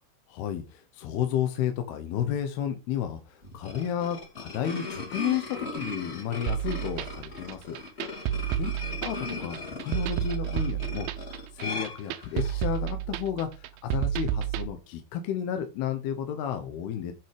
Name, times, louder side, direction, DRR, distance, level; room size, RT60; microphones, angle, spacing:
voice 1, 0.3-7.8 8.6-8.7 9.0-11.1 11.5-17.1, left 9 dB, 75° left, 7 dB, 2.9 m, -32 dB
sound 1, 3.4-12.7, left 2 dB, 20° left, 2.0 m, -38 dB
sound 2, 6.5-14.7, right 11 dB, 80° right, 2.5 m, -31 dB
9.0 x 6.0 x 5.0 m, 0.28 s
omnidirectional pair, 4.7 m